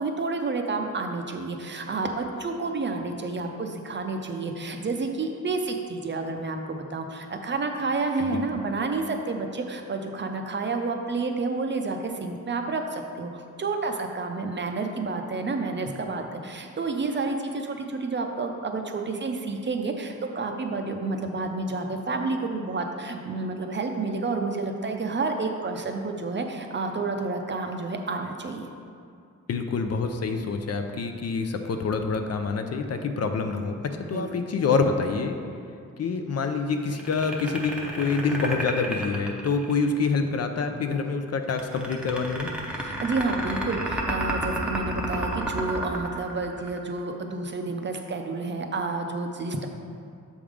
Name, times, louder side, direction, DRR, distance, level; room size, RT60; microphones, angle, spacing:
voice 1, 0.0-28.7 34.1-34.3 42.7-49.7, right 3 dB, 35° right, 4 dB, 0.5 m, -30 dB
voice 2, 29.5-35.4 36.0-42.5, left 4 dB, 55° left, 6 dB, 0.5 m, -26 dB
sound 1, 36.9-40.1 41.5-47.0, right 1 dB, 5° right, 0.7 m, -31 dB
7.0 x 3.6 x 4.9 m, 2.4 s
wide cardioid pair, 130°, 31 cm